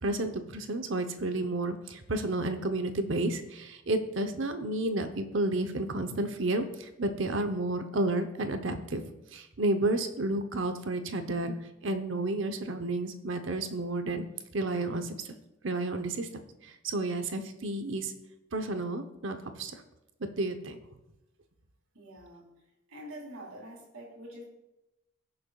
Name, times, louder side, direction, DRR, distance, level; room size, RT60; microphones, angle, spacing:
voice 1, 0.0-9.0 9.3-11.5 11.8-14.3 14.5-15.2 15.6-16.3 16.6-18.1 18.5-19.8 20.2-20.8, right 2 dB, 60° right, 7 dB, 0.8 m, -31 dB
voice 2, 21.9-22.5 22.9-24.5, right 1 dB, 80° right, -3 dB, 2.9 m, -45 dB
20.5 x 6.9 x 2.4 m, 0.93 s
head